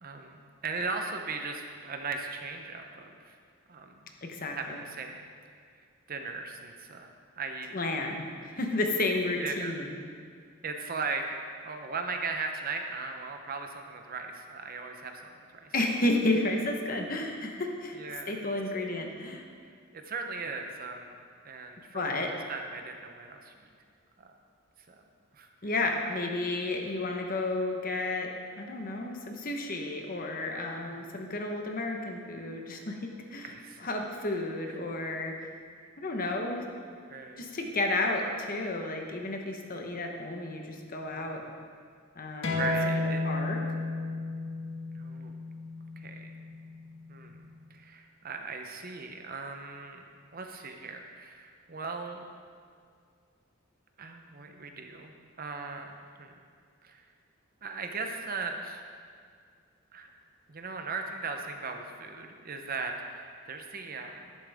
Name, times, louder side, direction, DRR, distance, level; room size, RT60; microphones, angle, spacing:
voice 1, 0.0-3.4 3.7-4.1 4.6-5.2 6.1-7.8 9.4-9.7 10.6-15.7 17.9-18.4 19.6-23.5 24.2-24.3 24.9-25.0 25.3-25.5 30.9-31.1 33.4-33.9 34.7-34.8 37.1-37.5 41.1-41.6 42.5-43.3 44.9-45.3 46.0-46.3 47.1-47.4 47.7-50.0 50.3-52.3 54.0-56.3 56.8-57.0 57.6-58.8 59.9-60.1 60.5-64.4, right 4 dB, 45° right, 4 dB, 0.8 m, -38 dB
voice 2, 4.2-4.8 7.7-9.9 15.7-18.0 18.3-19.4 21.9-22.3 25.6-28.3 28.6-33.5 33.8-35.5 36.0-36.6 37.4-41.4 42.2-42.6 43.2-43.6, left 2 dB, 45° left, 2 dB, 1.1 m, -32 dB
sound 1, 42.4-47.6, left 2 dB, 65° left, 1.8 m, -33 dB
11.5 x 11.0 x 3.6 m, 2.1 s
head